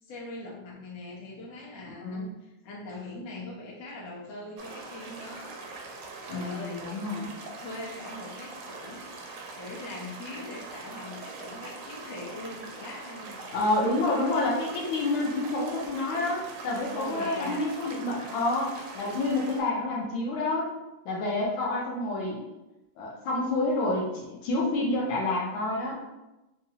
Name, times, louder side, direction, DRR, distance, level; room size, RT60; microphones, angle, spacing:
voice 1, 0.0-5.6 6.3-6.8 7.2-13.4 16.9-17.7, left 2 dB, 60° left, -4 dB, 1.4 m, -41 dB
voice 2, 2.0-2.3 6.3-7.3 13.5-20.7 21.0-22.4 23.0-26.0, left 2 dB, 80° left, -3 dB, 1.5 m, -28 dB
sound 1, 4.6-19.6, right 3 dB, 75° right, 1.3 m, -42 dB
3.6 x 3.0 x 2.8 m, 0.99 s
omnidirectional pair, 2.2 m